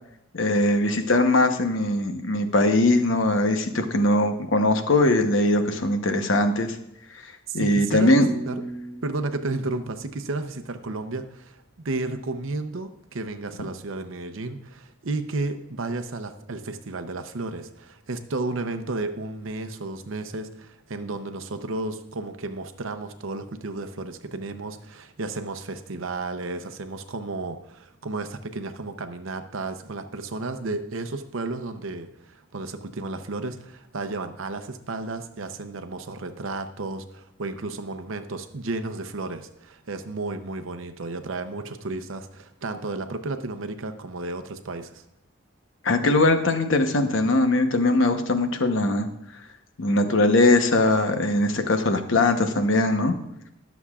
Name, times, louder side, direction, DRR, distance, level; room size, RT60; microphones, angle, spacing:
voice 1, 0.3-6.8 7.5-8.3 45.8-49.1 49.8-53.1, left 2 dB, 70° left, 7 dB, 0.9 m, -21 dB
voice 2, 7.5-8.6 9.0-45.0, right 3 dB, 75° right, 7 dB, 0.7 m, -33 dB
sound 1, 8.1-11.1, right 2 dB, 25° right, 1.6 m, -38 dB
21.0 x 7.0 x 2.4 m, 0.82 s
head